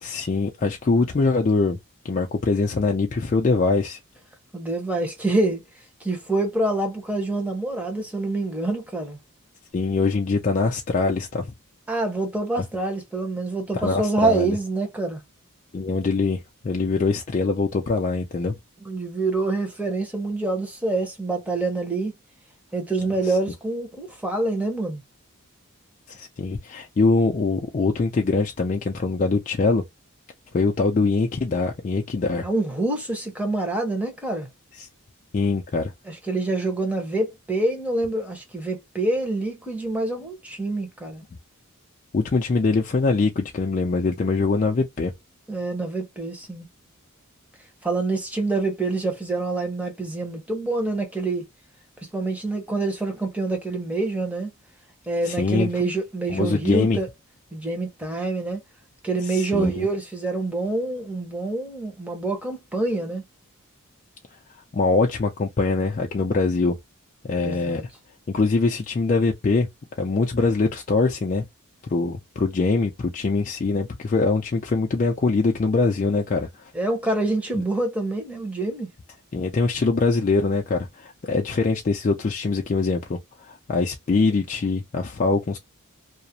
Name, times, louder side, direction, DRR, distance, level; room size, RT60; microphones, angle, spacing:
voice 1, 0.0-1.8 2.0-4.0 9.7-11.5 13.7-14.6 15.7-18.5 23.2-23.4 26.1-29.8 30.5-32.5 34.8-34.9 35.3-35.9 42.1-45.1 55.2-55.7 56.3-57.0 59.2-59.9 64.7-66.8 67.3-67.8 68.3-69.7 70.0-71.4 71.9-76.7 79.3-85.6, left 3 dB, 35° left, 0.3 m, -23 dB
voice 2, 4.5-5.6 6.0-9.2 11.9-15.2 18.8-22.1 22.7-25.0 32.4-34.5 36.1-41.2 45.5-46.7 47.8-51.5 52.1-54.5 55.1-57.1 57.5-58.6 59.0-63.2 67.4-67.8 76.7-78.9, right 2 dB, 5° right, 0.7 m, -26 dB
2.4 x 2.0 x 2.7 m
head